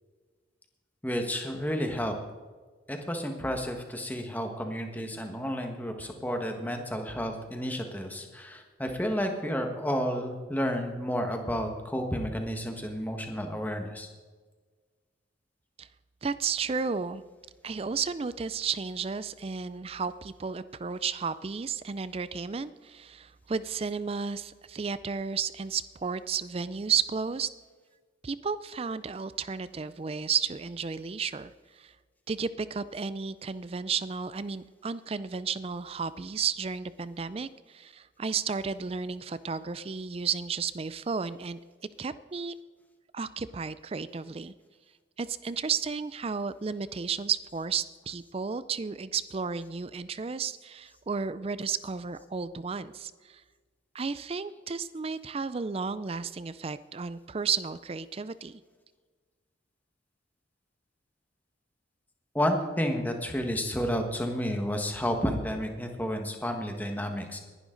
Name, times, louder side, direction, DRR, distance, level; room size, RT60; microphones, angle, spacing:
voice 1, 1.0-2.2 2.9-14.1 62.3-67.4, equal, 10° left, 4 dB, 1.5 m, -31 dB
voice 2, 16.2-17.2 17.6-27.5 28.2-31.5 31.8-31.9 32.3-41.6 42.0-42.5 43.1-44.5 45.2-53.4 53.9-58.6, right 5 dB, 30° right, 15 dB, 0.4 m, -33 dB
20.0 x 11.5 x 3.9 m, 1.4 s
head